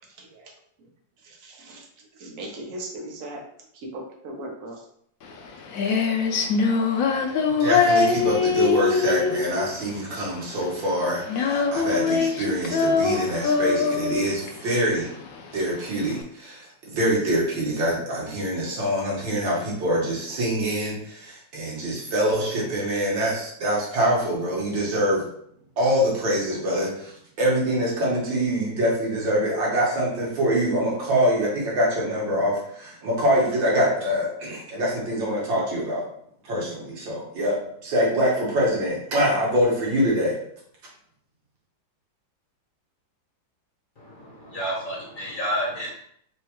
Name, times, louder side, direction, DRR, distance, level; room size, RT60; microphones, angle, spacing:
voice 1, 0.2-0.5 1.2-1.8 2.2-3.4 3.7-4.8, right 1 dB, 55° right, 0 dB, 1.0 m, -38 dB
Female singing, 5.2-16.2, left 5 dB, 90° left, 0.7 m, -23 dB
voice 2, 7.6-15.1 15.5-25.2 25.8-27.1 27.4-36.0 36.4-37.6 37.8-40.3, equal, 80° right, -4 dB, 2.0 m, -24 dB
voice 3, 44.0-45.9, equal, 55° left, -6 dB, 0.5 m, -30 dB
4.4 x 2.3 x 2.9 m, 0.68 s
omnidirectional pair, 2.1 m